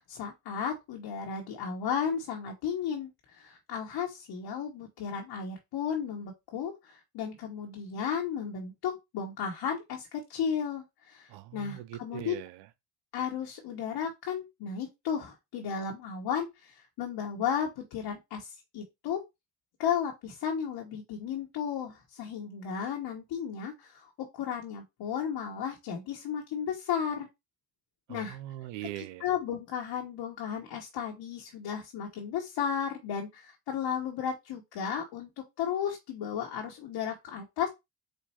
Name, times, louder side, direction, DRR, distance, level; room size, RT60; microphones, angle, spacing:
voice 1, 0.0-12.3 13.1-19.2 19.8-24.1 24.3-27.3 28.1-28.4 29.2-35.3 35.6-37.7, left 7 dB, 70° left, 1.3 m, -34 dB
voice 2, 11.3-12.7 28.1-29.3, right 14 dB, 75° right, 0.6 m, -41 dB
4.5 x 2.5 x 4.3 m
supercardioid pair, 65°, 42 cm